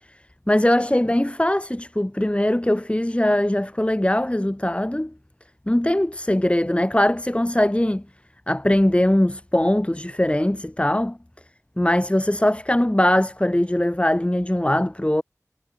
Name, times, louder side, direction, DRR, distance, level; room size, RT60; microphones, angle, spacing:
voice 1, 0.5-5.1 5.7-8.0 8.5-11.1 11.8-15.2, left 1 dB, 20° left, 2.2 m, -21 dB
wide cardioid pair, 50°, 6 cm